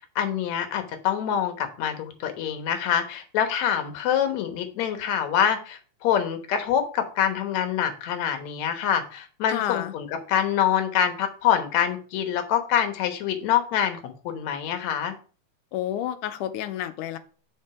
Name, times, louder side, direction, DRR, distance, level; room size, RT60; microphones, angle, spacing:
voice 1, 0.2-15.1, left 9 dB, 65° left, 7 dB, 2.3 m, -25 dB
voice 2, 9.5-9.9 15.7-17.2, left 12 dB, 85° left, 11 dB, 2.2 m, -30 dB
7.3 x 5.4 x 4.9 m, 0.38 s
omnidirectional pair, 3.6 m